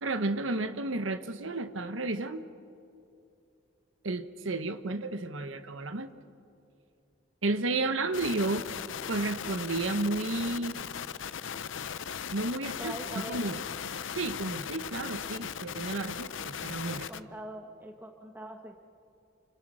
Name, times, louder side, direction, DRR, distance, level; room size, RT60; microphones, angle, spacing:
voice 1, 0.0-2.5 4.0-6.1 7.4-8.7 9.1-10.8 12.3-13.6 14.1-17.1, right 2 dB, 85° right, 10 dB, 1.2 m, -32 dB
sound 1, 8.1-17.2, left 8 dB, 80° left, 0.6 m, -38 dB
voice 2, 12.6-13.6 16.9-18.8, right 1 dB, 10° right, 3 dB, 1.2 m, -43 dB
29.0 x 25.5 x 6.2 m, 2.6 s
head